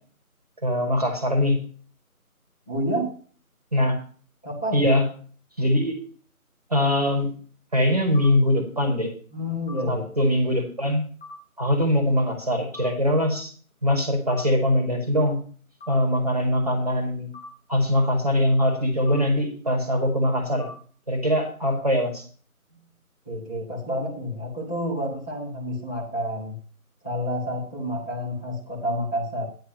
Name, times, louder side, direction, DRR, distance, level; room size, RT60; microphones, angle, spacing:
voice 1, 0.6-1.6 3.7-4.0 4.7-5.0 5.6-6.0 6.7-7.3 7.7-9.1 9.9-11.0 11.6-13.5 13.8-15.4 15.9-17.3 17.7-20.7 21.1-22.2, left 1 dB, 25° right, 3 dB, 1.9 m, -22 dB
voice 2, 2.7-3.2 4.4-4.8 9.3-10.3 23.2-26.5 27.0-29.4, equal, 10° left, -9 dB, 1.6 m, -29 dB
sound 1, 8.1-8.3 9.7-9.8 11.2-11.4 12.7-12.9 14.3-14.4 15.8-15.9 17.3-17.5 19.1-19.2 20.6-20.7, left 3 dB, 45° left, 5.6 m, -40 dB
10.0 x 7.0 x 5.4 m, 0.42 s
figure-of-eight pair, 165°, 44 cm